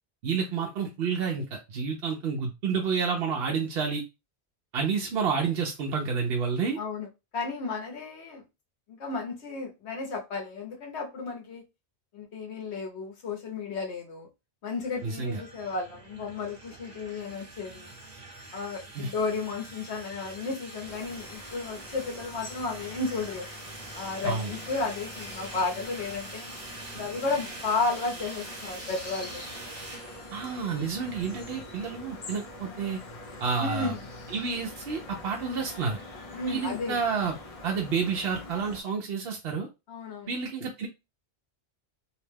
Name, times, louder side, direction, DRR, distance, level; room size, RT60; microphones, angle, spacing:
voice 1, 0.2-4.0 4.7-6.8 15.0-15.4 18.9-19.1 24.2-24.5 30.3-33.0 33.4-33.9 34.3-36.0 36.5-37.3 37.6-39.7 40.3-40.9, right 5 dB, 70° right, 0.8 m, -29 dB
voice 2, 6.8-7.1 7.3-8.4 9.0-11.6 12.1-14.3 14.6-17.9 18.5-23.4 24.0-26.5 26.9-29.4 33.6-34.0 36.3-37.0 39.9-40.3, left 4 dB, 85° left, 1.2 m, -33 dB
sound 1, 14.8-31.6, right 2 dB, 40° right, 0.9 m, -44 dB
sound 2, 20.8-38.8, left 2 dB, 40° left, 0.6 m, -45 dB
2.8 x 2.1 x 3.2 m
omnidirectional pair, 1.1 m